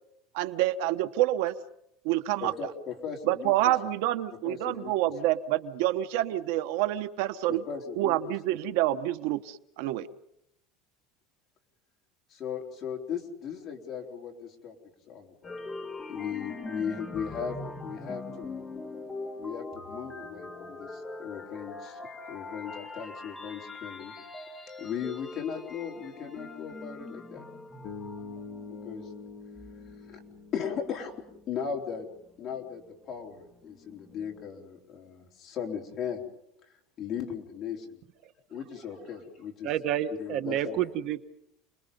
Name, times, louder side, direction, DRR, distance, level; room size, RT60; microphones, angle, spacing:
voice 1, 0.3-1.5 2.0-2.5 3.3-7.6 8.0-10.1, right 14 dB, 70° right, 11 dB, 1.1 m, -27 dB
voice 2, 2.4-3.7 4.4-5.3 7.5-8.2 8.4-8.5 12.3-14.7 15.1-15.6 16.1-18.7 19.3-24.1 24.8-27.4 28.7-29.1 30.0-30.2 30.5-32.1 32.4-36.2 37.0-38.0 38.5-39.7 40.2-40.8, left 7 dB, 30° left, 0 dB, 3.9 m, -37 dB
sound 1, 15.4-31.2 31.6-34.4, left 2 dB, 10° left, 1.8 m, -43 dB
Bass guitar, 27.8-31.9, left 4 dB, 55° left, 2.6 m, -45 dB
voice 3, 39.6-41.2, right 11 dB, 45° right, 10 dB, 1.0 m, -29 dB
30.0 x 21.5 x 5.4 m, 0.80 s
cardioid pair, 165°, 0 cm